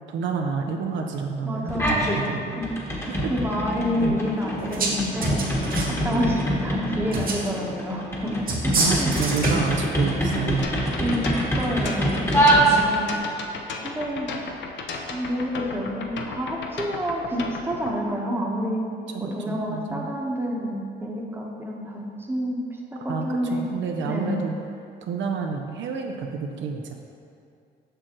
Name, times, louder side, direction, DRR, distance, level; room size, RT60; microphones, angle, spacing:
voice 1, 0.1-1.7 2.2-2.6 3.0-3.3 3.9-4.2 8.8-10.7 12.7-13.1 19.1-20.1 23.0-24.5 25.0-26.9, right 5 dB, 70° right, 2 dB, 0.6 m, -29 dB
voice 2, 1.4-2.7 3.3-5.5 5.9-9.1 11.0-13.2 13.8-14.3 15.1-18.9 19.2-22.6 22.9-23.7 24.0-24.4, equal, 10° right, -2 dB, 1.0 m, -28 dB
sound 1, 1.7-2.2 2.5-13.2, right 1 dB, 15° left, 1.2 m, -25 dB
sound 2, 4.6-5.0 5.2-6.0 7.1-7.5 8.5-9.7, right 3 dB, 45° right, 1.1 m, -26 dB
sound 3, 10.6-17.9, left 4 dB, 65° left, 0.6 m, -34 dB
6.7 x 6.0 x 3.0 m, 2.4 s
cardioid pair, 90°, 20 cm